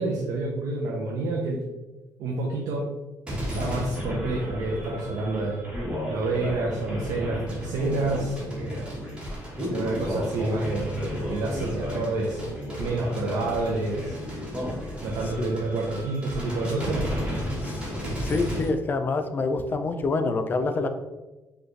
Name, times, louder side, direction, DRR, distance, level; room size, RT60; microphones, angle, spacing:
voice 1, 0.0-1.6 2.2-2.9 3.4-5.6 6.1-8.9 9.7-12.4 12.8-14.2 15.0-17.1, right 2 dB, 85° right, -2 dB, 0.6 m, -29 dB
sound 1, 3.3-18.7, equal, 15° right, 1.2 m, -32 dB
voice 2, 18.2-20.9, left 3 dB, 30° left, 8 dB, 0.4 m, -27 dB
5.0 x 2.5 x 3.1 m, 1.1 s
cardioid pair, 145°, 6 cm